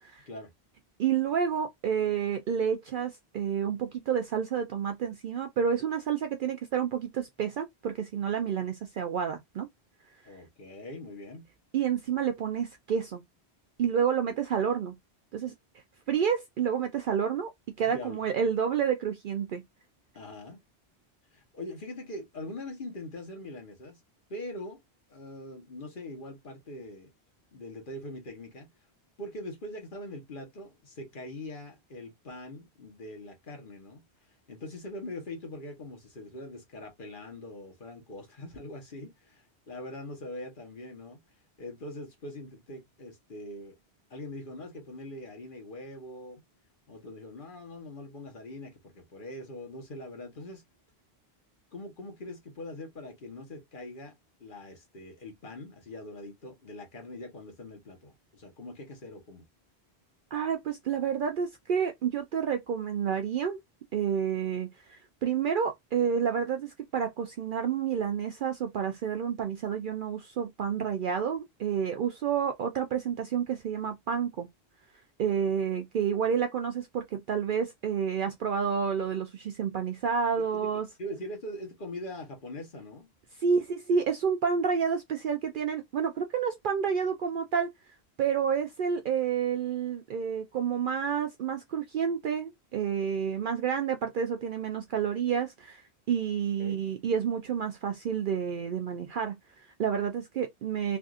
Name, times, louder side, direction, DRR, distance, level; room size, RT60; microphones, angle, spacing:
voice 1, 1.0-9.7 11.7-13.2 13.8-14.9 15.3-15.5 16.1-17.5 17.8-19.6 60.3-63.6 63.9-74.5 75.2-80.8 83.4-87.7 88.2-101.0, right 7 dB, 60° right, 0.6 m, -29 dB
voice 2, 10.2-11.5 17.8-18.2 20.1-20.6 21.3-24.0 24.3-24.8 25.1-27.1 27.5-28.7 29.2-34.0 34.5-41.2 41.6-43.7 44.1-46.4 46.9-50.6 51.7-54.1 54.4-59.4 80.5-80.7 81.0-83.1 96.6-96.8, left 1 dB, 55° left, 1.3 m, -42 dB
3.4 x 2.6 x 2.4 m
omnidirectional pair, 1.1 m